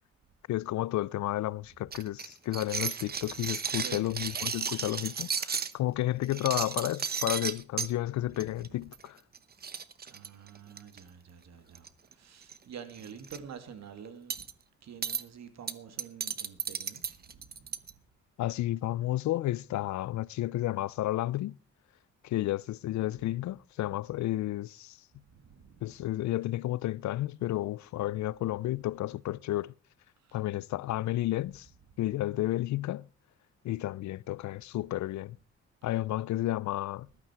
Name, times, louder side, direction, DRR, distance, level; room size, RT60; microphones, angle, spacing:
voice 1, 0.5-9.2 18.4-21.6 22.2-25.0 25.8-29.7 30.3-31.7 32.0-33.1 33.6-35.4 35.8-37.1, left 15 dB, 70° left, 0.6 m, -32 dB
sound 1, 1.9-5.7 6.2-7.9 8.4-8.7 8.9-9.1 9.3-9.4 9.6-11.0 11.8-12.1 12.4-12.6 13.0-13.4 14.3-14.5 15.0-15.2 15.7-17.9, right 6 dB, 30° right, 1.0 m, -34 dB
voice 2, 3.6-4.2 8.2-8.9 10.0-14.5 14.8-18.1 25.1-26.0 30.2-30.4 31.9-32.0, right 7 dB, 60° right, 2.5 m, -49 dB
14.5 x 12.0 x 4.6 m
cardioid pair, 90°, 30 cm